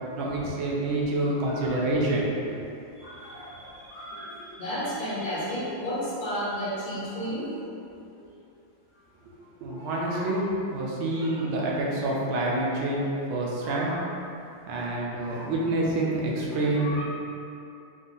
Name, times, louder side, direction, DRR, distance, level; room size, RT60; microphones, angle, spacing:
voice 1, 0.2-2.3 9.6-13.9 14.7-17.0, right 2 dB, 75° right, -4 dB, 1.5 m, -27 dB
voice 2, 1.2-1.8 3.0-7.6 9.7-10.5 11.1-11.5 13.6-14.3 15.1-15.5 16.7-17.0, equal, 50° left, -10 dB, 1.6 m, -34 dB
4.1 x 2.7 x 3.8 m, 2.7 s
omnidirectional pair, 2.3 m